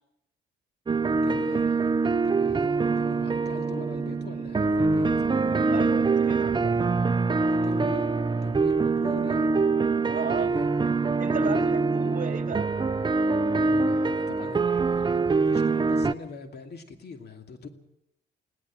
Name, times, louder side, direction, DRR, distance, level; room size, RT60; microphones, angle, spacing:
sound 1, 0.9-16.1, right 4 dB, 25° right, 0.7 m, -24 dB
voice 1, 1.2-1.8 2.2-5.3 7.6-9.6 10.4-10.7 11.3-11.7 13.6-17.7, left 4 dB, 55° left, 6 dB, 2.6 m, -42 dB
voice 2, 5.6-6.8 10.0-10.5 11.2-12.7, right 6 dB, 40° right, 6 dB, 2.5 m, -34 dB
20.5 x 17.5 x 7.5 m, 0.82 s
cardioid pair, 90°, 20 cm